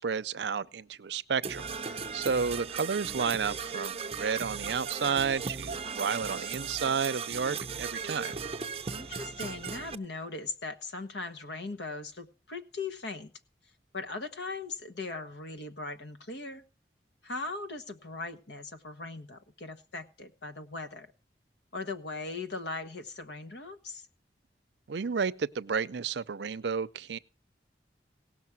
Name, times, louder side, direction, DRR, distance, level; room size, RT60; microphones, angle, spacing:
voice 1, 0.0-8.4 24.9-27.2, right 6 dB, 75° right, 0.5 m, -31 dB
Percussion / Brass instrument, 1.4-9.9, right 5 dB, 35° right, 0.7 m, -37 dB
voice 2, 8.9-13.3 13.9-16.6 17.2-21.1 21.7-24.1, left 3 dB, 80° left, 1.2 m, -39 dB
18.0 x 6.3 x 5.9 m
head